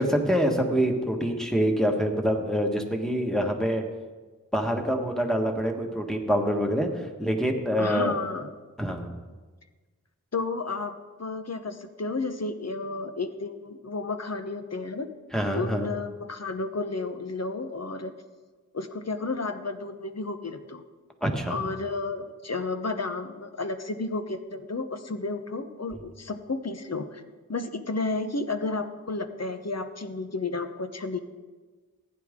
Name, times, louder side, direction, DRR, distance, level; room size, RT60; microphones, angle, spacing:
voice 1, 0.0-3.8 4.5-6.9 7.2-8.1 8.8-9.1 15.3-15.9 21.2-21.6, equal, ahead, 1 dB, 1.5 m, -25 dB
voice 2, 7.8-8.5 10.3-15.1 15.5-18.1 18.7-20.8 21.5-27.2 27.5-31.2, left 3 dB, 55° left, 8 dB, 0.9 m, -32 dB
15.5 x 9.6 x 3.7 m, 1.3 s
wide cardioid pair, 50°, 31 cm